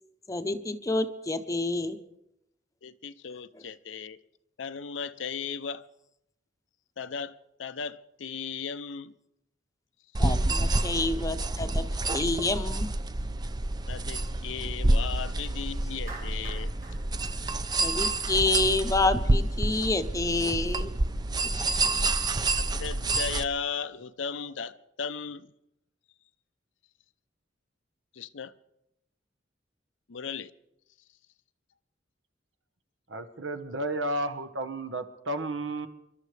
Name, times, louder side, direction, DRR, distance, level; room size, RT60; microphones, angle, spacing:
voice 1, 0.3-2.0 10.2-11.9 12.1-12.9 17.8-21.0, left 2 dB, 20° left, 0.8 m, -28 dB
voice 2, 2.8-4.2 4.6-5.9 7.0-9.1 13.9-16.7 21.9-22.1 22.6-25.5 28.1-28.5 30.1-30.5, left 6 dB, 85° left, 0.6 m, -36 dB
sound 1, 10.1-23.4, right 2 dB, 20° right, 0.5 m, -28 dB
Clapping, 16.1-18.4, right 3 dB, 50° right, 5.2 m, -46 dB
voice 3, 33.1-35.9, right 1 dB, 80° right, 1.3 m, -32 dB
29.0 x 12.5 x 3.3 m
head